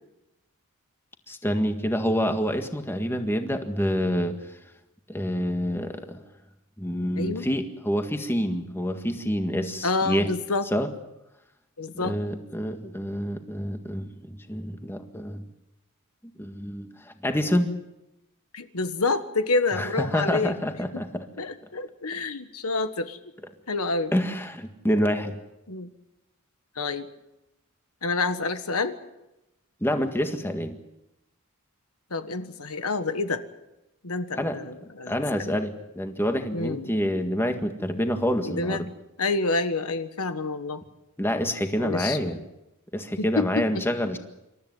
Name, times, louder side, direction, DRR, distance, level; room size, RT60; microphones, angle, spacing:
voice 1, 1.3-4.4 5.1-6.2 6.8-10.3 10.7-10.9 11.9-15.4 16.4-17.7 19.7-21.3 24.1-25.4 29.8-30.8 34.3-34.6 35.1-38.9 41.2-42.4 42.9-44.2, equal, 10° left, 6 dB, 1.7 m, -27 dB
voice 2, 7.1-7.5 9.8-10.7 11.8-12.2 18.5-20.6 21.4-23.2 23.7-24.1 25.7-25.9 26.7-27.1 28.0-28.9 32.1-33.4 34.0-35.5 36.5-36.9 38.4-38.9 39.2-40.8 41.8-42.3 43.2-43.8, left 3 dB, 80° left, 9 dB, 1.5 m, -28 dB
27.0 x 13.5 x 9.5 m, 0.93 s
head